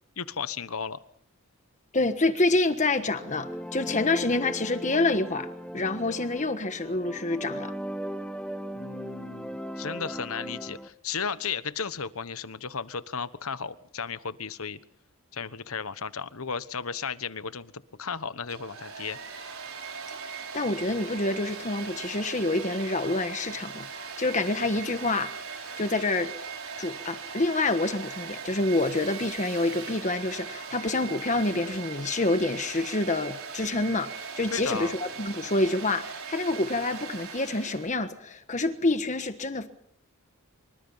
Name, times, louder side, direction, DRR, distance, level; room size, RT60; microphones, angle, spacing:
voice 1, 0.2-1.0 8.7-14.8 15.3-17.7 18.0-19.2 34.5-34.9, left 6 dB, 75° left, 1.2 m, -34 dB
voice 2, 1.9-5.5 5.7-7.7 20.2-23.9 24.2-26.3 26.8-39.7, left 2 dB, 35° left, 1.4 m, -27 dB
sound 1, 3.0-10.9, equal, 5° left, 1.1 m, -38 dB
Domestic sounds home sounds, 18.4-37.9, right 6 dB, 70° right, 4.9 m, -39 dB
26.0 x 24.0 x 5.8 m
head